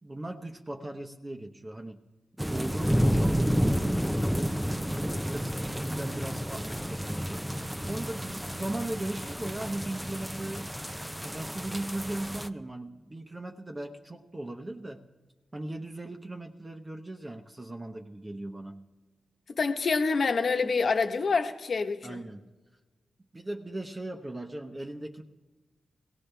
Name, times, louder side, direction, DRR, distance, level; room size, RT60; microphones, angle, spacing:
voice 1, 0.0-2.0 2.4-4.6 4.8-7.4 7.8-10.7 11.2-15.0 15.5-18.8 22.0-22.4 23.3-25.2, right 1 dB, 25° right, 1.0 m, -38 dB
sound 1, 2.4-12.5, equal, 5° right, 0.7 m, -30 dB
voice 2, 19.6-22.2, left 4 dB, 60° left, 1.3 m, -26 dB
21.5 x 16.5 x 3.4 m
cardioid pair, 65°, 0 cm